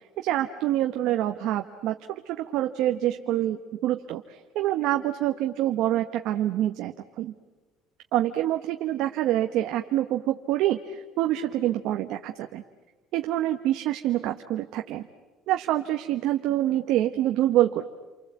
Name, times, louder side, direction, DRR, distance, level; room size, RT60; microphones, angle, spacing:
voice 1, 0.2-4.2 4.5-7.3 8.1-12.6 13.1-15.0 15.5-17.8, right 13 dB, 65° right, 5 dB, 1.1 m, -26 dB
29.5 x 24.0 x 8.2 m, 1.2 s
supercardioid pair, 110°, 0 cm